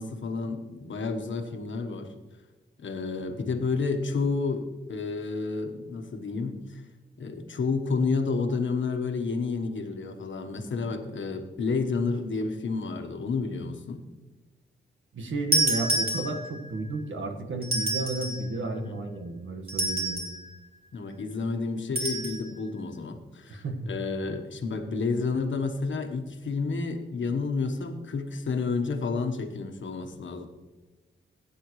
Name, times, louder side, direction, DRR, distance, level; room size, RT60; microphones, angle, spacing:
voice 1, 0.0-2.1 2.8-6.8 7.2-14.0 18.7-19.0 20.9-30.5, left 4 dB, 65° left, 5 dB, 1.3 m, -30 dB
voice 2, 15.1-20.2 23.5-23.9, right 2 dB, 75° right, 4 dB, 1.6 m, -32 dB
sound 1, 15.5-16.7 17.6-18.5 19.7-20.4 22.0-22.4, right 2 dB, 45° right, 2.9 m, -28 dB
16.5 x 9.3 x 3.2 m, 1.2 s
wide cardioid pair, 160°, 21 cm